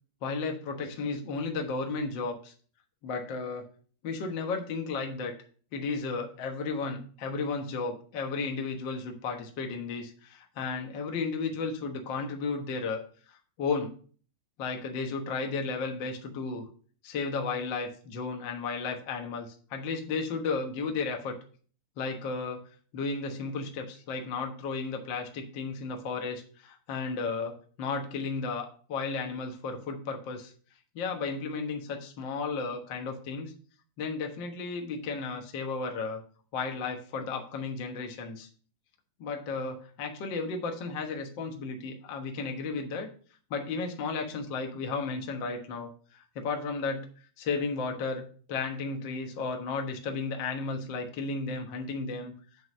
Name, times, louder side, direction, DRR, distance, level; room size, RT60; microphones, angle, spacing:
voice 1, 0.2-2.5 3.0-3.7 4.0-5.3 5.7-13.9 14.6-16.7 17.0-21.3 22.0-22.6 22.9-30.5 30.9-33.5 34.0-36.2 36.5-38.5 39.2-43.1 43.5-47.1 47.4-48.2 48.5-52.3, left 4 dB, 70° left, 3 dB, 1.1 m, -34 dB
7.8 x 3.9 x 6.5 m, 0.43 s
omnidirectional pair, 4.2 m